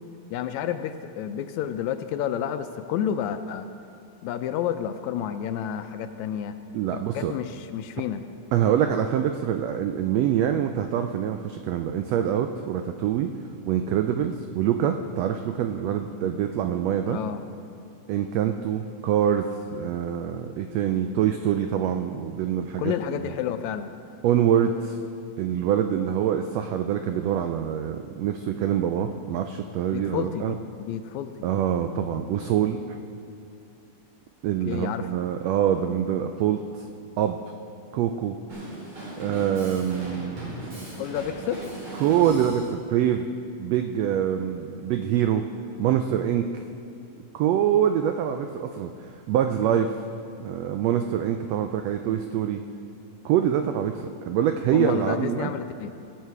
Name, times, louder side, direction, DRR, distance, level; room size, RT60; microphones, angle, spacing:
voice 1, 0.3-3.7 4.2-6.6 6.9-8.3 17.1-17.4 22.8-23.9 29.9-31.3 34.7-35.1 41.0-41.6 54.7-55.9, left 9 dB, 80° left, 9 dB, 1.8 m, -30 dB
voice 2, 6.7-7.3 8.5-13.3 13.7-17.2 18.1-23.3 24.2-25.0 25.4-30.6 31.4-32.8 34.4-36.9 37.2-37.4 37.9-38.4 39.2-40.6 42.0-43.3 43.6-45.4 45.8-46.6 47.3-50.0 50.4-52.6 53.2-55.5, right 9 dB, 85° right, 6 dB, 1.4 m, -25 dB
Drum kit, 38.5-42.7, right 1 dB, 65° right, 5.3 m, -37 dB
19.5 x 7.8 x 4.7 m, 2.5 s
omnidirectional pair, 3.5 m